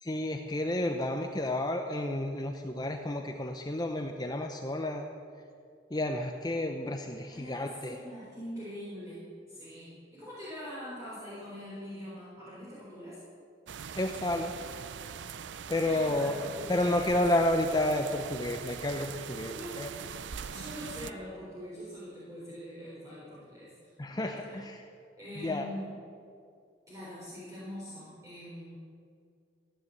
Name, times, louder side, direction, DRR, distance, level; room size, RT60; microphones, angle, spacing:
voice 1, 0.0-5.1 5.9-8.0 14.0-14.5 15.7-16.3 16.7-19.9 24.0-24.8 25.4-25.7, left 1 dB, 20° left, 4 dB, 0.7 m, -31 dB
voice 2, 7.3-13.2 15.8-17.2 18.9-19.1 19.4-24.6 25.2-25.9 26.9-28.8, equal, 20° right, -9 dB, 4.1 m, -43 dB
sound 1, 13.7-21.1, right 7 dB, 85° right, 0.5 m, -42 dB
15.5 x 10.0 x 8.1 m, 2.3 s
head